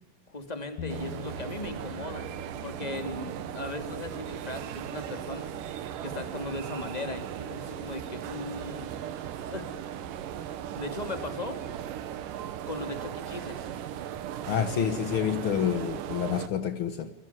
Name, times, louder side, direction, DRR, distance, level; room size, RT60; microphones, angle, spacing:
voice 1, 0.3-2.3 2.6-5.5 6.0-9.7 10.7-11.6 12.7-13.7, left 2 dB, 10° left, 6 dB, 2.4 m, -38 dB
sound 1, 0.8-10.8, left 2 dB, 60° left, 2.4 m, -48 dB
sound 2, 0.9-16.5, right 10 dB, 70° right, 2.6 m, -37 dB
voice 2, 14.5-17.1, left 8 dB, 85° left, 10 dB, 1.1 m, -28 dB
27.0 x 21.5 x 9.5 m, 0.92 s
omnidirectional pair, 4.3 m